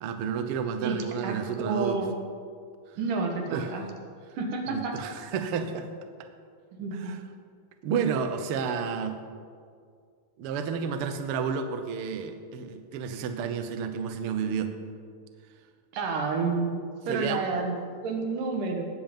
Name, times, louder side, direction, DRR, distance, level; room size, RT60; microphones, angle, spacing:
voice 1, 0.0-2.0 3.5-3.7 4.7-5.9 7.0-7.2 7.8-9.2 10.4-14.7 17.1-17.4, right 6 dB, 70° right, 7 dB, 1.3 m, -30 dB
voice 2, 0.8-2.1 3.0-3.8 4.4-4.9 6.7-7.1 15.9-18.9, right 4 dB, 85° right, 2 dB, 3.1 m, -30 dB
19.5 x 7.8 x 5.3 m, 2.1 s
omnidirectional pair, 3.6 m